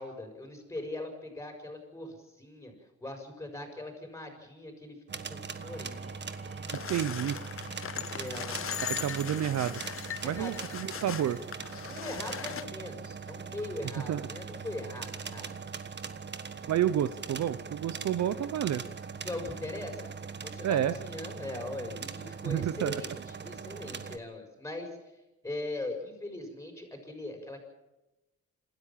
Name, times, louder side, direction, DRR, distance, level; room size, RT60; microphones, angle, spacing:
voice 1, 0.0-2.7 3.0-6.1 8.1-8.7 10.3-10.5 11.9-15.5 19.2-20.1 20.4-24.9 25.4-27.6, left 1 dB, 10° left, 4 dB, 6.6 m, -40 dB
sound 1, 5.1-24.2, right 5 dB, 35° right, 1.4 m, -41 dB
Engine / Tools, 5.5-11.9, left 2 dB, 20° right, 6.6 m, -53 dB
sound 2, 6.7-12.6, left 8 dB, 45° left, 1.2 m, -39 dB
voice 2, 6.7-7.4 8.8-9.8 10.2-11.4 14.1-14.3 16.7-18.8 20.6-20.9 22.5-23.0, right 10 dB, 60° right, 14 dB, 0.9 m, -30 dB
27.5 x 13.5 x 7.5 m, 0.99 s
cardioid pair, 90°, 30 cm